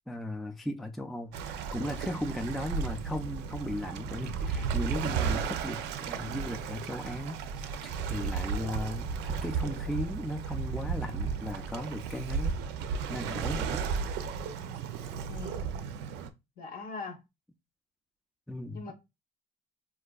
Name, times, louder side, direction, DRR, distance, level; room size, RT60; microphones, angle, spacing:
voice 1, 0.1-12.6 12.8-13.9 18.5-18.9, left 1 dB, ahead, 0.3 m, -37 dB
Waves surf, 1.3-16.3, right 6 dB, 90° right, 0.4 m, -34 dB
voice 2, 15.3-15.7 16.6-17.2 18.7-18.9, left 4 dB, 60° left, 0.9 m, -41 dB
3.8 x 2.5 x 2.3 m
cardioid pair, 110°, 17 cm